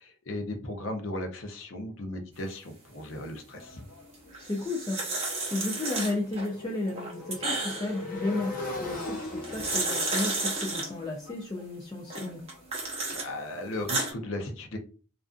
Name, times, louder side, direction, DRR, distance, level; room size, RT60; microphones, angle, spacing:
voice 1, 0.0-3.8 13.1-14.8, left 1 dB, 60° left, 3 dB, 0.6 m, -36 dB
Motorcycle, 3.2-13.0, left 2 dB, 40° left, 0.9 m, -41 dB
sound 1, 4.3-6.5 6.9-8.0 9.2-10.9 12.1-13.3 13.7-14.1, right 2 dB, 30° right, 0.7 m, -32 dB
voice 2, 4.4-5.0 5.5-12.4, left 2 dB, 20° left, -1 dB, 0.3 m, -33 dB
2.4 x 2.4 x 2.3 m, 0.38 s
head